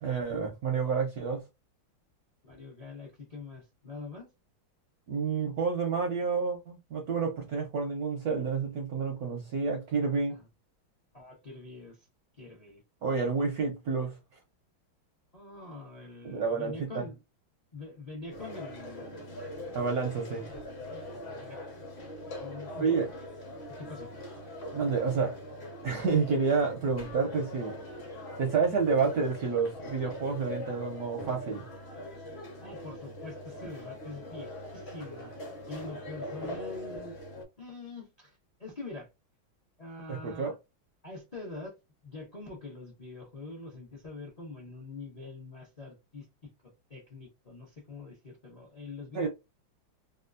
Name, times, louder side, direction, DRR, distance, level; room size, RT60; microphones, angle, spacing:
voice 1, 0.0-1.4 5.1-10.4 13.0-14.2 16.2-17.0 19.7-20.5 22.8-23.1 24.7-25.3 25.8-27.8 28.4-31.7 40.1-40.5 49.1-49.3, right 5 dB, 70° right, 0.9 m, -29 dB
voice 2, 2.4-4.3 10.3-10.5 11.1-12.1 12.4-12.8 15.3-17.2 17.7-19.4 21.3-21.6 22.4-23.0 23.8-24.1 32.6-35.3 35.7-37.2 37.6-39.1 39.8-40.5 41.0-41.7 42.0-46.5 46.9-49.3, left 3 dB, 65° left, 0.4 m, -44 dB
sound 1, 18.3-37.4, left 1 dB, 45° left, 0.8 m, -42 dB
3.5 x 2.4 x 2.4 m
omnidirectional pair, 2.2 m